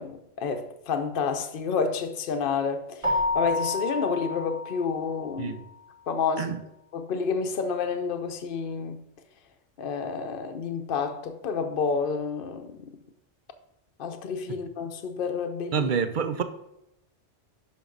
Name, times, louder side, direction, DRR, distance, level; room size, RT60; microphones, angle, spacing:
voice 1, 0.0-5.6 6.1-6.6 6.9-9.0 9.8-12.9 14.0-15.9, left 5 dB, 50° left, 0.9 m, -29 dB
Keyboard (musical), 3.0-5.5, left 2 dB, 25° right, 1.6 m, -30 dB
voice 2, 15.7-16.4, right 6 dB, 50° right, 0.6 m, -27 dB
10.5 x 5.3 x 3.9 m
omnidirectional pair, 1.3 m